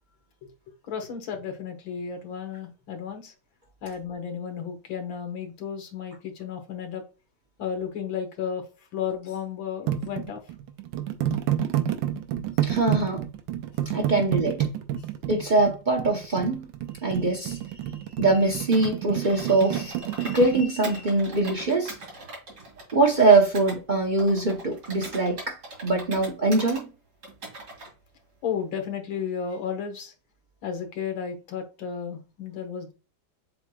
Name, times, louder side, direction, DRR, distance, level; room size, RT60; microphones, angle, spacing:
voice 1, 0.8-3.3 3.8-7.0 7.6-8.6 8.9-10.4 11.3-11.4 28.4-30.1 30.6-32.9, left 7 dB, 85° left, 2.0 m, -33 dB
sound 1, 9.9-20.6, right 11 dB, 80° right, 1.4 m, -29 dB
voice 2, 12.6-13.2 13.9-14.7 15.3-16.7 17.0-17.6 18.2-22.0 22.9-26.9, right 3 dB, 45° right, 0.6 m, -23 dB
Computer keyboard, 18.7-20.5 20.8-23.8 24.2-26.8 27.2-27.9, right 2 dB, 65° right, 3.1 m, -41 dB
7.6 x 3.0 x 2.3 m
omnidirectional pair, 2.1 m